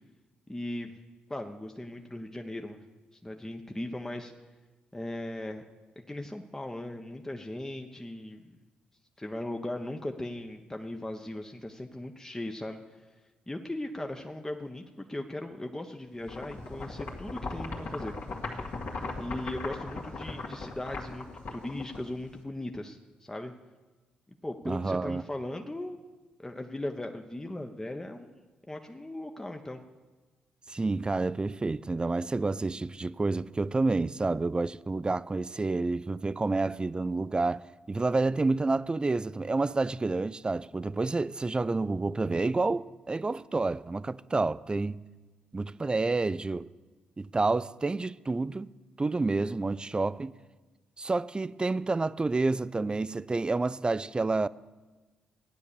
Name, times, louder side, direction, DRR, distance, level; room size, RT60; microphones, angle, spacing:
voice 1, 0.5-1.0 1.3-2.8 3.2-4.3 4.9-5.6 6.0-8.6 9.2-12.8 13.5-18.1 19.2-21.3 21.5-23.5 24.4-26.0 26.4-28.4 28.7-29.8, left 1 dB, 15° left, 1.0 m, -38 dB
sound 1, 16.3-22.4, left 3 dB, 60° left, 2.2 m, -38 dB
voice 2, 24.6-25.2 30.7-45.0 45.5-46.7 47.2-48.7 49.0-50.3 51.0-54.5, right 3 dB, 25° right, 0.4 m, -29 dB
14.5 x 9.7 x 6.9 m
hypercardioid pair, 45°, 4 cm